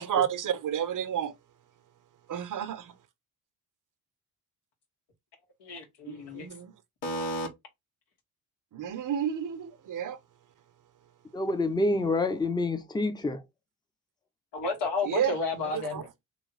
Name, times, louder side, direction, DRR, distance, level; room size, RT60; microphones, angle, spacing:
voice 1, 0.0-1.3 2.3-2.9 6.1-6.7 8.7-10.2 15.1-15.3 15.9-16.0, right 9 dB, 45° right, 0.8 m, -30 dB
voice 2, 5.6-6.5 7.0-7.5 14.5-16.1, left 3 dB, 65° left, 1.8 m, -32 dB
voice 3, 11.3-13.4, left 2 dB, 10° left, 0.8 m, -28 dB
3.1 x 3.1 x 4.0 m
hypercardioid pair, 55°, 44 cm